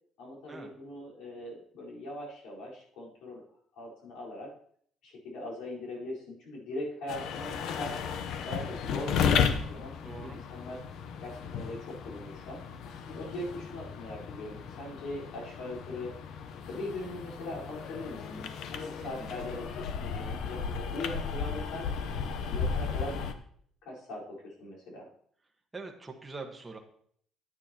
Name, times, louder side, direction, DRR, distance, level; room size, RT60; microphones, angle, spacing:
voice 1, 0.2-3.4 3.7-4.5 5.0-7.9 8.4-10.8 11.2-12.6 13.1-16.1 16.7-19.8 20.1-21.9 22.5-23.2 23.8-25.1, left 1 dB, 80° left, -5 dB, 4.3 m, -40 dB
sound 1, 7.1-23.3, left 6 dB, 65° left, 0.8 m, -34 dB
voice 2, 10.0-10.4 19.0-19.3 25.7-26.8, right 3 dB, 10° right, 1 dB, 1.3 m, -43 dB
11.0 x 9.3 x 2.9 m, 0.62 s
cardioid pair, 145°, 0 cm